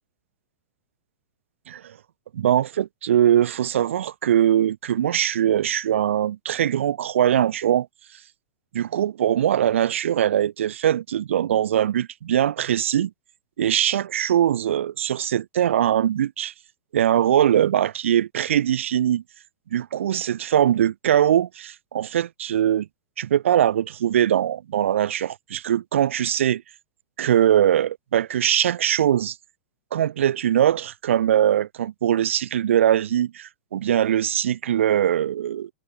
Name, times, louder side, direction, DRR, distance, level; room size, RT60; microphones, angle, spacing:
voice 1, 2.3-7.9 8.7-13.1 13.6-16.5 16.9-19.2 19.7-22.9 23.2-26.6 27.2-29.3 29.9-35.7, right 10 dB, 75° right, 6.8 m, -21 dB
supercardioid pair, 175°, 7 cm